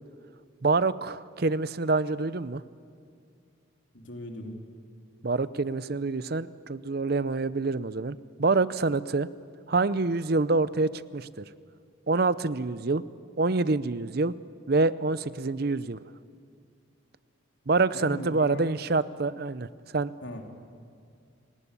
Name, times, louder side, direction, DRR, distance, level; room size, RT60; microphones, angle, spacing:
voice 1, 0.6-2.6 5.2-9.3 9.7-11.3 12.1-13.0 13.4-14.3 14.7-16.0 17.7-19.7 19.9-20.1, right 3 dB, 50° right, 17 dB, 0.6 m, -26 dB
voice 2, 3.9-4.6 17.9-18.6 20.2-20.4, left 1 dB, 65° left, 2 dB, 3.3 m, -38 dB
29.0 x 18.5 x 8.4 m, 2.3 s
head